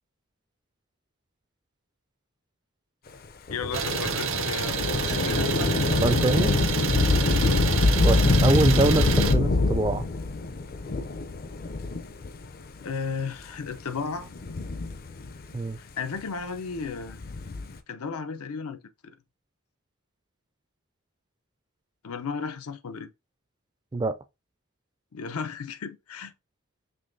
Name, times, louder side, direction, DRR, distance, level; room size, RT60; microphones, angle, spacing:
voice 1, 3.5-5.7 7.1-7.6 12.8-14.3 15.8-17.2 17.9-18.8 22.0-23.1 25.1-26.3, left 5 dB, 90° left, 0.6 m, -34 dB
Thunder / Rain, 3.5-12.4 13.2-13.3 14.2-15.5 17.0-17.8, left 3 dB, 45° left, 0.5 m, -25 dB
Idling, 3.7-9.3, right 7 dB, 65° right, 0.7 m, -29 dB
voice 2, 6.0-6.5 8.0-10.1 15.5-15.8 23.9-24.1, right 2 dB, 20° right, 0.3 m, -24 dB
5.5 x 3.0 x 2.6 m
head